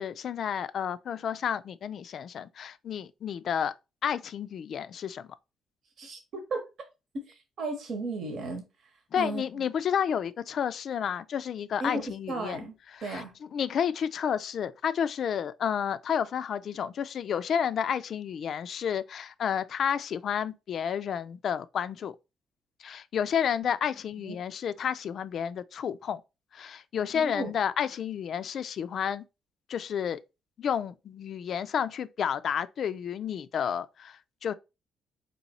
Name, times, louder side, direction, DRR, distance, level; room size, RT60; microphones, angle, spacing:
voice 1, 0.0-3.7 4.0-5.3 9.1-12.6 12.9-13.2 13.5-22.1 22.8-26.2 26.5-29.2 29.7-30.2 30.6-34.5, left 8 dB, 60° left, 0.3 m, -31 dB
voice 2, 6.0-6.7 7.1-8.7 9.1-9.7 11.8-12.7 13.0-13.4 24.2-24.4 27.1-27.5, right 2 dB, 65° right, 1.0 m, -35 dB
4.0 x 3.1 x 2.8 m
cardioid pair, 90°, 0 cm